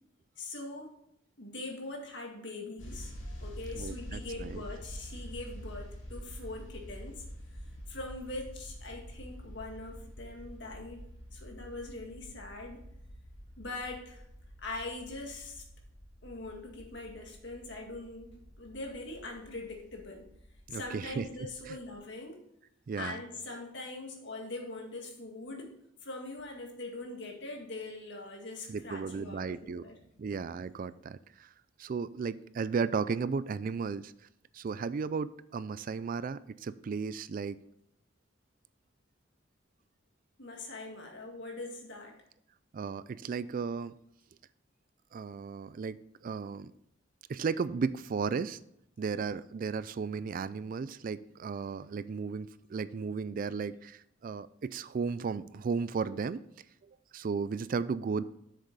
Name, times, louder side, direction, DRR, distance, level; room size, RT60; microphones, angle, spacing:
voice 1, 0.4-0.9 1.4-7.2 7.9-11.1 11.3-12.8 13.6-14.2 14.6-15.6 16.2-20.3 20.7-22.4 23.0-25.8 26.0-30.0 40.4-42.2, left 2 dB, 65° left, 1 dB, 2.0 m, -42 dB
sound 1, 2.8-22.0, equal, 80° left, 2.2 m, -47 dB
voice 2, 3.7-4.6 20.7-21.8 22.9-23.2 28.7-29.9 30.2-31.5 31.8-34.1 34.5-37.6 42.7-43.9 45.1-46.0 46.2-46.7 47.3-48.6 49.0-56.4 56.8-58.2, right 5 dB, 45° right, 16 dB, 0.3 m, -35 dB
7.9 x 6.6 x 4.0 m, 0.78 s
head